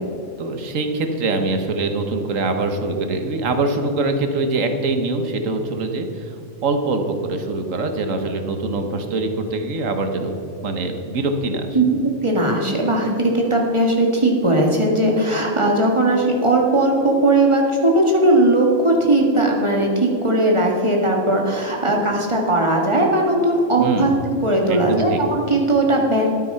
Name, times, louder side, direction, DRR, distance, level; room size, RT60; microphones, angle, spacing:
voice 1, 0.4-6.3 6.6-10.3 10.6-11.8 23.8-24.1 24.7-25.2, right 3 dB, 90° right, 6 dB, 1.5 m, -23 dB
voice 2, 12.2-24.1 24.4-26.4, right 1 dB, 25° right, 0 dB, 1.8 m, -18 dB
12.5 x 9.2 x 5.6 m, 2.5 s
omnidirectional pair, 1.3 m